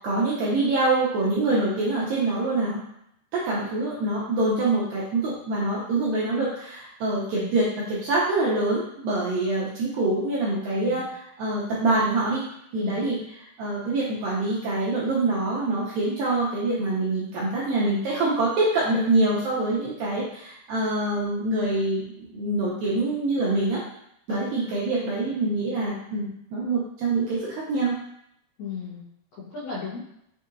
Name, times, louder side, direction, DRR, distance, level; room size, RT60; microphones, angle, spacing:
voice 1, 0.0-2.8 3.3-11.0 11.4-12.5 12.7-13.2 13.6-23.8 24.3-28.0, right 2 dB, 80° right, -6 dB, 2.1 m, -25 dB
voice 2, 10.7-11.0 12.7-13.0 24.3-24.5 28.6-29.0 29.4-30.0, left 5 dB, 90° left, -9 dB, 1.6 m, -35 dB
6.2 x 2.8 x 2.5 m, 0.76 s
omnidirectional pair, 4.7 m